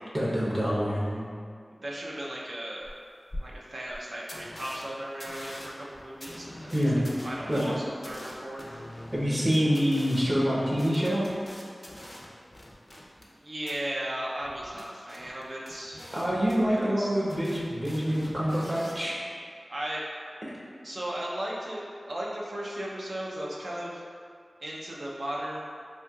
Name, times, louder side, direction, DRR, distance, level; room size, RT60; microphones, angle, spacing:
voice 1, 0.1-1.3 6.7-7.0 7.5-7.8 9.1-11.2 16.1-19.1, equal, 35° right, -7 dB, 0.8 m, -26 dB
voice 2, 1.8-2.9 3.4-6.7 7.2-8.6 13.4-16.1 16.7-17.2 19.7-20.1 20.8-24.0 24.6-25.6, right 1 dB, 65° right, -5 dB, 0.6 m, -36 dB
sound 1, 2.8-2.9 3.3-3.4 3.9-4.0 4.3-4.8 5.2-13.3 13.6-13.7 14.4-17.0 17.3-19.0, left 1 dB, 35° left, 0.5 m, -44 dB
4.3 x 2.7 x 2.3 m, 2.2 s
wide cardioid pair, 50°, 0 cm